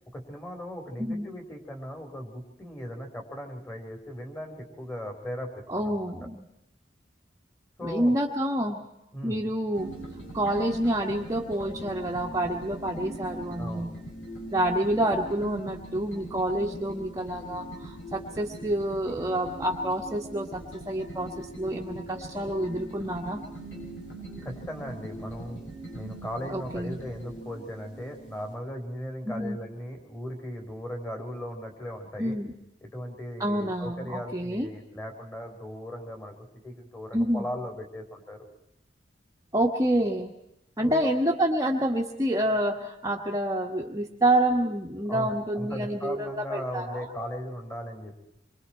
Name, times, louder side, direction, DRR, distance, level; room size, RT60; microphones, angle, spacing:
voice 1, 0.1-6.0 7.8-8.2 9.1-9.4 13.6-13.9 24.4-25.6 25.9-32.4 32.8-36.3 36.6-38.4 40.8-41.1 45.1-48.2, equal, 15° left, 2 dB, 4.1 m, -37 dB
voice 2, 5.7-6.4 7.8-8.8 9.2-9.9 10.3-13.9 14.5-23.4 26.5-27.0 29.2-29.6 32.2-32.5 33.4-34.7 37.1-37.5 39.5-40.3 40.8-47.0, right 1 dB, 20° right, -1 dB, 1.5 m, -28 dB
sound 1, 9.7-28.5, right 1 dB, 75° left, 7.9 m, -41 dB
27.5 x 24.5 x 4.5 m, 0.81 s
head